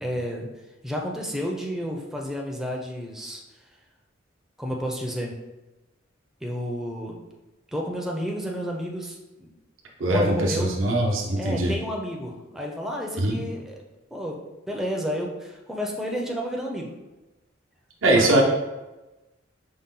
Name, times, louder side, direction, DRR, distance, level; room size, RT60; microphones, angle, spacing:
voice 1, 0.0-0.5 0.8-3.4 4.6-5.3 6.4-7.2 7.7-9.5 10.1-10.7 11.4-13.8 14.1-14.4 14.7-16.9 18.1-18.4, equal, ahead, -1 dB, 0.4 m, -31 dB
voice 2, 10.0-11.7 13.2-13.4 18.0-18.4, right 1 dB, 80° right, -2 dB, 0.8 m, -21 dB
5.3 x 2.1 x 3.7 m, 1.1 s
head